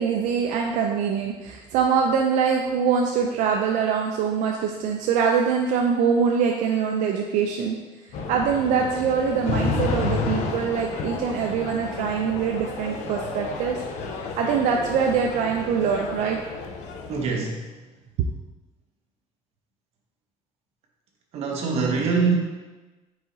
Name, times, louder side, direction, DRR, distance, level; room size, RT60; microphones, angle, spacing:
voice 1, 0.0-7.8 8.3-13.8 14.2-16.4, right 6 dB, 80° right, 1 dB, 0.4 m, -23 dB
sound 1, 8.1-17.3, left 4 dB, 70° left, 0.5 m, -31 dB
voice 2, 17.1-17.7 21.3-22.4, right 4 dB, 55° right, 0 dB, 0.8 m, -24 dB
4.7 x 3.8 x 2.6 m, 1.2 s
cardioid pair, 165°, 13 cm